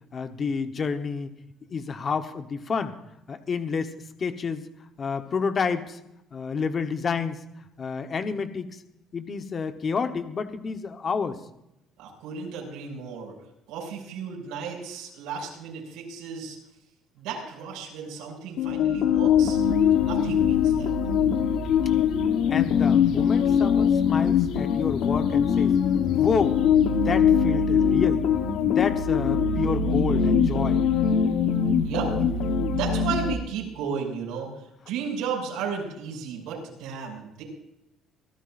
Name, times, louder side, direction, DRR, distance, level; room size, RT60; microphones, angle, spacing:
voice 1, 0.1-1.3 1.7-3.0 3.3-4.7 5.0-6.0 6.3-8.8 9.1-11.4 22.5-25.7 26.1-26.6 26.9-28.2 28.6-30.8, left 5 dB, 25° left, 8 dB, 1.0 m, -29 dB
voice 2, 12.0-13.3 13.7-16.6 17.2-19.6 19.9-20.9 31.8-32.2 32.7-37.4, right 6 dB, 80° right, -1 dB, 6.3 m, -34 dB
sound 1, 18.6-33.3, left 7 dB, 60° left, 1.1 m, -22 dB
25.5 x 14.5 x 2.5 m, 0.85 s
cardioid pair, 175°, 0 cm